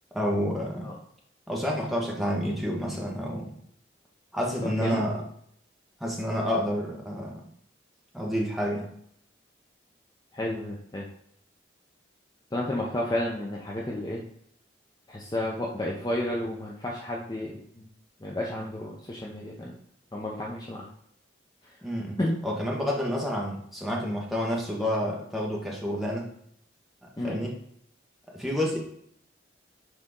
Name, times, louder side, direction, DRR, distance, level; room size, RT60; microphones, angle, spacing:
voice 1, 0.1-0.9 1.5-3.6 4.3-5.2 6.0-7.4 8.1-8.9 21.8-26.3 27.2-27.6 28.3-28.8, equal, ahead, -2 dB, 1.2 m, -29 dB
voice 2, 4.6-5.0 10.3-11.1 12.5-14.2 15.1-17.9 18.2-19.7 20.1-20.9 22.2-22.3 27.2-27.4, left 1 dB, 20° left, -2 dB, 0.7 m, -31 dB
6.3 x 4.2 x 3.7 m, 0.68 s
head